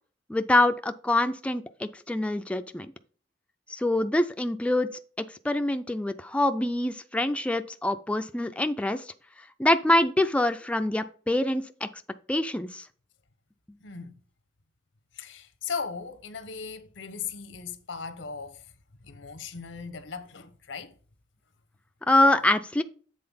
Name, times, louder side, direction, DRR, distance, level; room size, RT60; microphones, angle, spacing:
voice 1, 0.3-2.9 3.7-4.9 5.4-9.0 9.6-11.9 12.3-12.8 22.1-22.8, left 1 dB, 5° left, 0.3 m, -25 dB
voice 2, 13.8-14.1 15.1-18.6 19.0-20.9, left 5 dB, 85° left, 0.9 m, -37 dB
7.7 x 3.9 x 5.4 m
head